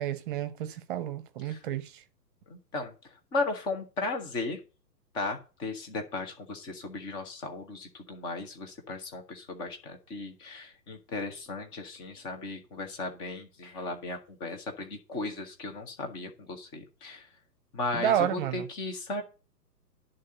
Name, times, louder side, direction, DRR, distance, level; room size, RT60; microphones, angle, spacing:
voice 1, 0.0-2.0 17.9-18.7, right 11 dB, 30° right, 0.9 m, -30 dB
voice 2, 2.5-4.6 5.1-17.4 17.7-19.2, left 3 dB, 10° left, 0.6 m, -36 dB
11.0 x 3.8 x 6.8 m
hypercardioid pair, 135°, 50 cm